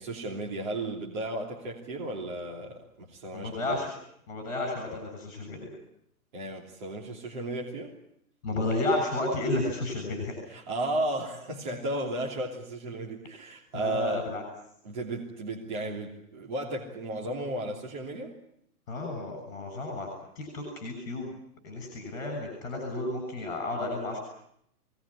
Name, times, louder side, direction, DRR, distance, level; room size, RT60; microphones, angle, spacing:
voice 1, 0.0-3.8 6.3-7.9 10.5-14.3 14.8-18.3, right 1 dB, 30° right, -2 dB, 3.2 m, -34 dB
voice 2, 3.3-3.9 4.3-5.6 8.4-10.4 13.7-14.4 18.9-20.1 20.4-21.3 21.6-24.2, left 2 dB, 40° left, 4 dB, 6.9 m, -32 dB
23.0 x 19.5 x 9.9 m, 0.72 s
hypercardioid pair, 180°, 47 cm